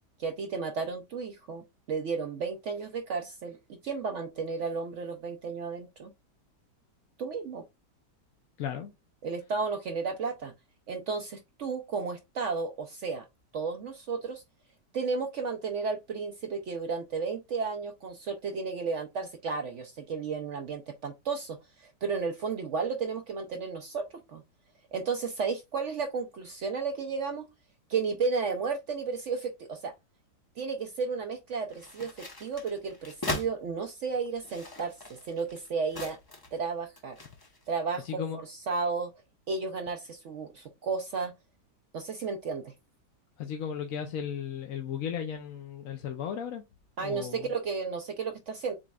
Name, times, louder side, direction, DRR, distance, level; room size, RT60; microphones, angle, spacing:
voice 1, 0.2-3.6 3.8-6.1 7.2-7.6 9.2-10.5 10.9-13.3 13.5-14.4 14.9-24.4 24.9-27.5 27.9-29.9 30.6-36.2 36.5-37.2 37.7-38.2 38.5-39.1 39.5-41.3 41.9-42.7 47.0-48.7, right 5 dB, 70° right, 0.7 m, -33 dB
voice 2, 8.6-8.9 38.0-38.4 43.4-46.6 47.0-47.5, left 8 dB, 60° left, 1.0 m, -35 dB
sound 1, 31.7-33.5 34.3-36.6 37.0-37.6, left 1 dB, 20° left, 0.7 m, -39 dB
7.4 x 3.1 x 2.3 m
omnidirectional pair, 1.8 m